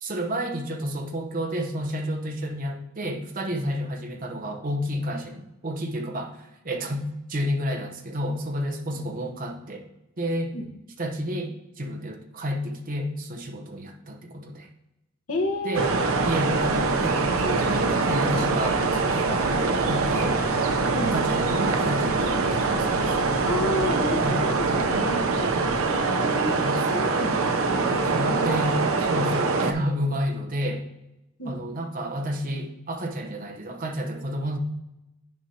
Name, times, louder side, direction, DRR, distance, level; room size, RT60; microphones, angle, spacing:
voice 1, 0.0-9.8 10.2-10.5 11.0-14.7 15.6-15.9 16.2-20.4 21.0-23.3 24.2-24.4 25.4-25.6 26.6-27.2 28.1-30.8 31.4-34.6, equal, 40° right, 3 dB, 0.9 m, -31 dB
voice 2, 15.3-16.1 20.9-21.2 23.5-25.2 25.9-27.4 27.6-27.9 28.3-28.5 31.4-31.6, left 1 dB, 90° left, 2 dB, 1.2 m, -31 dB
sound 1, 15.7-29.7, right 3 dB, 80° right, 0.7 m, -24 dB
10.5 x 5.1 x 2.8 m, 0.93 s
head